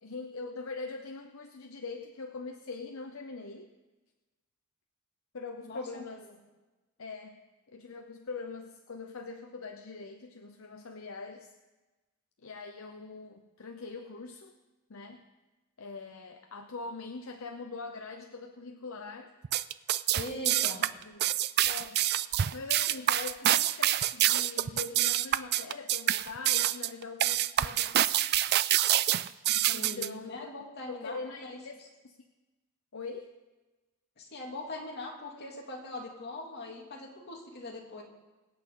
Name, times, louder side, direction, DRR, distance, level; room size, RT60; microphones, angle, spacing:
voice 1, 0.0-3.7 5.3-6.3 7.0-11.5 12.4-14.5 14.9-15.2 15.8-19.3 20.6-21.2 21.6-22.0 22.5-28.0 29.7-30.5 30.9-31.8 32.0-32.2 32.9-33.3, left 4 dB, 70° left, 5 dB, 0.8 m, -42 dB
voice 2, 5.6-6.2 20.1-20.8 29.5-31.6 34.2-38.0, left 2 dB, 50° left, -1 dB, 2.6 m, -41 dB
sound 1, 19.4-30.1, right 12 dB, 50° right, 0.4 m, -26 dB
25.0 x 8.5 x 3.9 m, 1.2 s
head